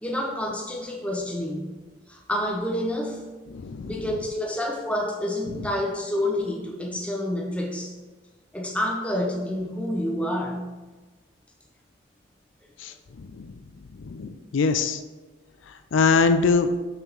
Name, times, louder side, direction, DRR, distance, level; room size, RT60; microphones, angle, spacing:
voice 1, 0.0-1.7 2.1-3.2 3.9-7.9 8.5-10.7, left 1 dB, 5° left, -1 dB, 1.0 m, -28 dB
voice 2, 3.5-3.9 12.8-12.9 13.4-13.5 14.0-15.0 15.9-16.7, left 4 dB, 70° left, 9 dB, 0.4 m, -22 dB
6.8 x 3.7 x 6.1 m, 1.3 s
head